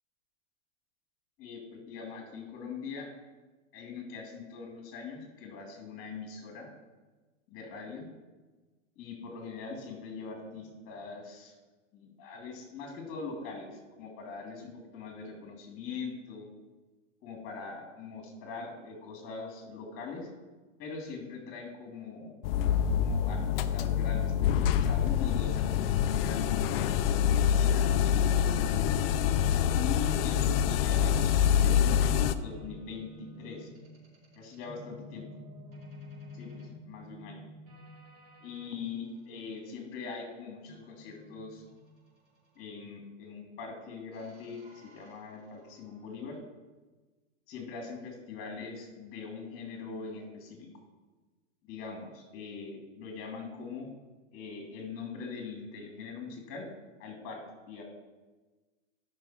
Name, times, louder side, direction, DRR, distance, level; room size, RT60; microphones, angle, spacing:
voice 1, 1.4-3.1 3.7-6.7 7.5-8.1 9.0-11.5 11.9-16.5 17.2-20.3 20.8-22.4 22.9-27.9 29.7-33.7 34.4-35.2 36.3-37.4 38.4-41.6 42.5-46.4 47.5-50.7 51.6-53.9 54.3-56.7 57.0-57.8, left 5 dB, 35° left, 2 dB, 2.9 m, -42 dB
sound 1, 22.4-32.3, left 9 dB, 50° left, 0.6 m, -26 dB
sound 2, 29.7-38.7 40.7-42.6 44.1-46.1, left 1 dB, 45° right, 3.5 m, -51 dB
12.5 x 5.8 x 4.4 m, 1.3 s
hypercardioid pair, 135°, 37 cm